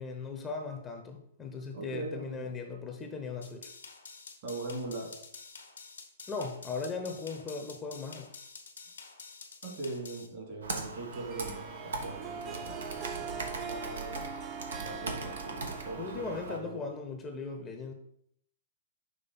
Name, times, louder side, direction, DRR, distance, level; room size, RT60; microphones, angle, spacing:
voice 1, 0.0-3.7 6.3-8.3 15.9-17.9, left 4 dB, 20° left, 4 dB, 0.8 m, -38 dB
voice 2, 1.7-2.5 4.4-5.3 9.6-14.5 14.8-16.8, right 2 dB, 50° right, -1 dB, 2.6 m, -41 dB
sound 1, 3.4-10.3, left 5 dB, 75° left, 1.1 m, -49 dB
Computer keyboard, 10.6-16.6, right 3 dB, 75° right, 1.0 m, -40 dB
Harp, 11.1-16.9, right 6 dB, 25° right, 0.4 m, -43 dB
6.0 x 3.1 x 5.5 m, 0.70 s
figure-of-eight pair, 115°, 0 cm